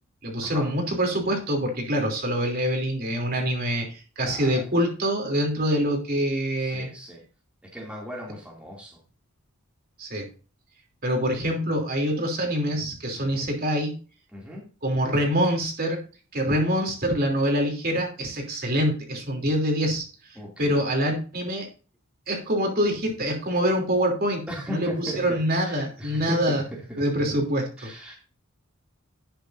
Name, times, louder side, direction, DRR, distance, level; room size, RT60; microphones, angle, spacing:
voice 1, 0.2-6.9 10.0-10.3 11.0-14.0 14.8-16.0 16.3-20.0 20.6-21.7 22.3-26.6 27.0-27.9, equal, 45° right, 2 dB, 3.1 m, -25 dB
voice 2, 4.2-4.6 6.6-7.2 7.6-9.0 13.2-13.5 14.3-14.7 20.3-20.8 24.5-27.1 27.8-28.2, equal, 5° right, -3 dB, 2.5 m, -38 dB
11.0 x 9.4 x 2.6 m, 0.35 s
head